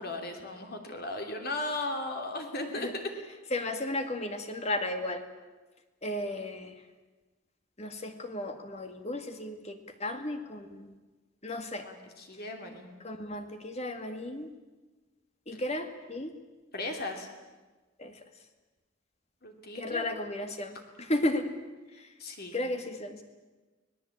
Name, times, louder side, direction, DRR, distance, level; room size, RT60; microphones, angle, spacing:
voice 1, 0.0-3.1 11.8-12.9 15.5-15.6 16.7-17.3 19.4-20.1 22.2-22.6, left 2 dB, 50° left, 4 dB, 3.2 m, -36 dB
voice 2, 3.5-5.2 6.0-6.7 7.8-10.9 11.4-11.9 13.0-14.5 15.5-16.4 18.0-18.2 19.7-21.5 21.9-22.1 22.5-23.2, left 1 dB, 35° left, 7 dB, 2.0 m, -34 dB
25.0 x 19.0 x 8.7 m, 1.2 s
head